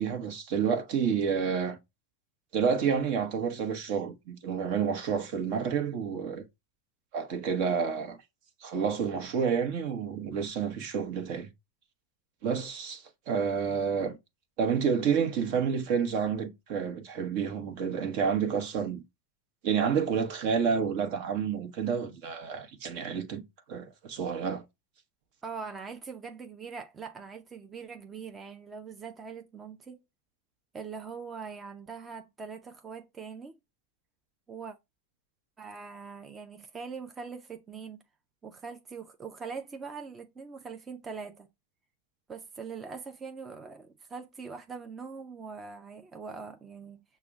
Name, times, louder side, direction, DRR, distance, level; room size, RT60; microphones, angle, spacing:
voice 1, 0.0-1.8 2.5-6.4 7.1-8.2 8.6-11.5 12.4-14.2 14.6-19.0 19.6-23.4 23.7-24.6, right 6 dB, 60° right, 0.9 m, -29 dB
voice 2, 25.4-30.0 30.7-33.6 34.5-34.8 35.6-38.0 38.4-41.5 42.3-47.0, right 5 dB, 20° right, 0.5 m, -42 dB
5.9 x 2.1 x 3.4 m
hypercardioid pair, 105°, 0 cm